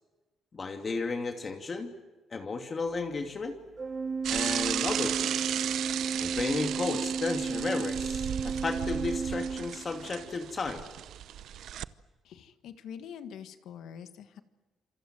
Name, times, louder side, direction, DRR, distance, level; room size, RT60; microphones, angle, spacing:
voice 1, 0.5-1.9 2.3-3.5 4.3-5.3 6.2-10.8, left 4 dB, 35° left, 4 dB, 2.7 m, -33 dB
Organ, 3.8-10.3, right 5 dB, 35° right, 1.1 m, -34 dB
Bicycle / Mechanisms, 4.2-11.9, right 11 dB, 75° right, 0.8 m, -35 dB
voice 2, 12.2-14.4, left 8 dB, 80° left, 9 dB, 1.6 m, -45 dB
27.5 x 25.0 x 7.7 m, 1.2 s
cardioid pair, 90°, 0 cm